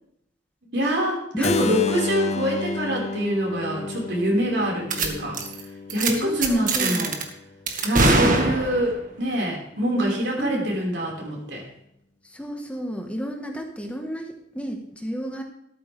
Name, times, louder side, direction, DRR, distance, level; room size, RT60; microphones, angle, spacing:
voice 1, 0.7-5.4 5.9-7.2 7.8-11.6, equal, 80° right, -2 dB, 5.2 m, -25 dB
voice 2, 1.3-1.8 6.2-7.1 8.0-8.4 10.4-10.7 12.3-15.4, equal, 5° left, 3 dB, 1.6 m, -31 dB
Keyboard (musical), 1.4-7.3, left 3 dB, 40° left, 0.6 m, -31 dB
sound 1, 4.9-5.1 5.3-5.6 5.9-6.1 6.4-7.2 7.7-9.0, right 3 dB, 45° right, 1.9 m, -22 dB
14.0 x 13.0 x 3.6 m, 0.75 s
head